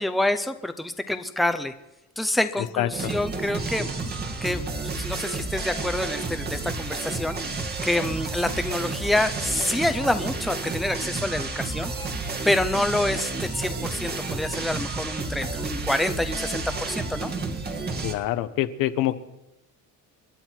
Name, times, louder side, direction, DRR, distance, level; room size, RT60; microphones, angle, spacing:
voice 1, 0.0-1.7 2.2-3.9 4.4-4.6 5.0-7.4 7.8-11.9 12.4-17.3, left 1 dB, ahead, 8 dB, 0.8 m, -27 dB
voice 2, 2.6-3.1 18.0-19.2, left 14 dB, 85° left, 10 dB, 1.2 m, -26 dB
sound 1, 2.9-18.1, right 3 dB, 30° right, 1.9 m, -31 dB
29.0 x 11.0 x 4.6 m, 0.95 s
cardioid pair, 140°, 33 cm